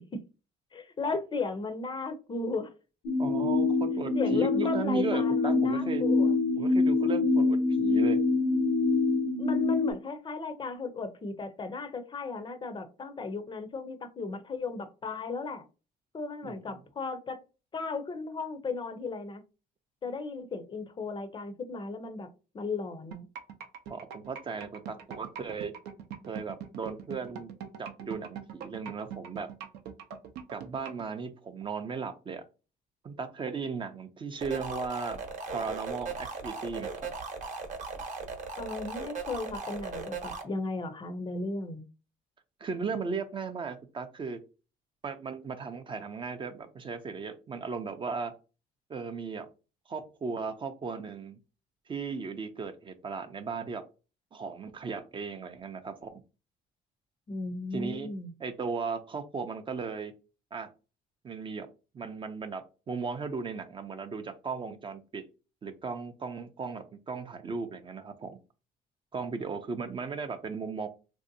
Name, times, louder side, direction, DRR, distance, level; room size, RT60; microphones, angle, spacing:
voice 1, 0.7-2.7 4.1-6.3 9.4-15.6 16.1-17.4 17.7-19.4 20.0-22.3 22.5-23.3 38.6-41.8 57.3-58.3, left 3 dB, 30° left, 9 dB, 0.5 m, -36 dB
sound 1, 3.0-9.9, left 3 dB, 75° left, 0.6 m, -25 dB
voice 2, 3.2-6.0 6.6-8.2 16.4-16.6 23.9-25.7 26.3-27.5 27.8-29.5 30.5-32.5 33.0-35.2 35.5-36.9 42.6-44.4 45.0-48.3 48.9-49.5 49.9-51.4 51.9-53.8 54.3-56.2 57.7-58.1 58.4-60.1 60.5-60.7 61.2-61.7 61.9-65.2 65.6-68.4 69.1-70.9, right 5 dB, 30° right, 8 dB, 0.4 m, -36 dB
sound 2, 23.1-31.0, right 8 dB, 85° right, 0.6 m, -41 dB
sound 3, 34.4-40.4, right 4 dB, 45° right, 0.8 m, -38 dB
3.2 x 2.6 x 2.6 m, 0.32 s
cardioid pair, 110°, 17 cm